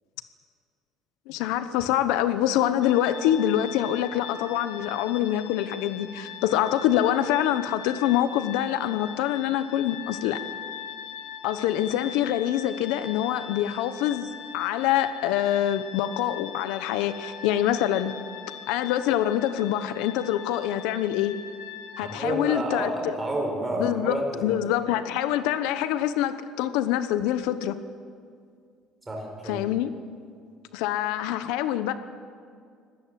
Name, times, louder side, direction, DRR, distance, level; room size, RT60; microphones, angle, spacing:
voice 1, 1.3-10.4 11.4-18.1 18.7-21.3 22.0-23.1 23.8-27.8 29.4-29.9 30.7-31.9, left 11 dB, 90° left, 12 dB, 1.0 m, -25 dB
sound 1, 2.8-22.2, left 8 dB, 70° left, 1.8 m, -41 dB
voice 2, 22.0-24.5 29.1-29.6, right 1 dB, 10° right, 0 dB, 4.7 m, -30 dB
25.0 x 18.0 x 7.6 m, 2.2 s
cardioid pair, 170°, 0 cm